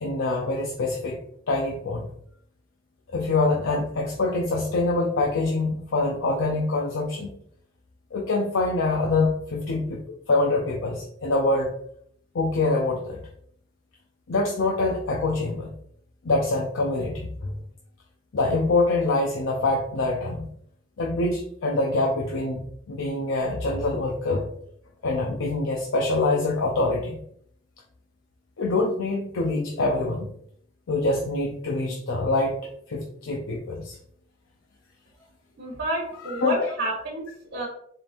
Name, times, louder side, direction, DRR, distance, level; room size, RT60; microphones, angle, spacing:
voice 1, 0.0-1.2 1.5-2.1 3.1-7.3 8.1-10.0 10.3-11.7 12.3-13.2 14.3-15.7 16.2-17.5 18.3-20.5 21.0-24.5 25.0-27.2 28.6-30.3 30.9-32.6 32.9-34.0 36.3-36.6, left 2 dB, 70° left, 0 dB, 0.6 m, -25 dB
voice 2, 35.6-37.7, right 1 dB, 55° right, -6 dB, 1.3 m, -30 dB
4.6 x 3.5 x 2.5 m, 0.67 s
head